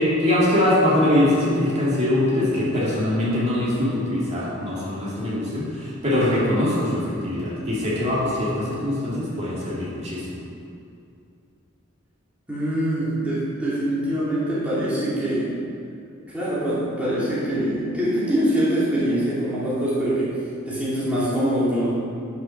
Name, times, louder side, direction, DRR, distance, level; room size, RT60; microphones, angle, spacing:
voice 1, 0.0-10.3, left 1 dB, 30° right, -8 dB, 2.5 m, -22 dB
voice 2, 12.5-15.5 16.3-20.3 20.6-21.9, right 1 dB, 5° right, -10 dB, 2.3 m, -24 dB
10.5 x 5.7 x 5.9 m, 2.5 s
head